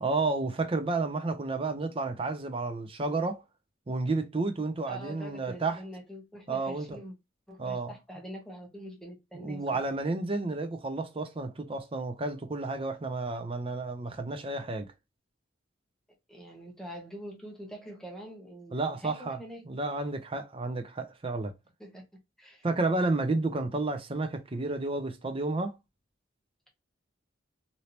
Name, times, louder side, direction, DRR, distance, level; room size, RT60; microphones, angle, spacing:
voice 1, 0.0-3.4 3.9-5.8 6.5-7.0 7.6-7.9 9.3-14.9 18.7-19.4 19.7-21.5 22.6-25.8, right 3 dB, 30° right, 0.5 m, -31 dB
voice 2, 4.8-7.1 7.5-9.8 16.3-19.6 21.8-22.0 22.4-22.7 23.5-23.6, right 1 dB, 5° left, 1.0 m, -44 dB
3.2 x 2.7 x 2.8 m
head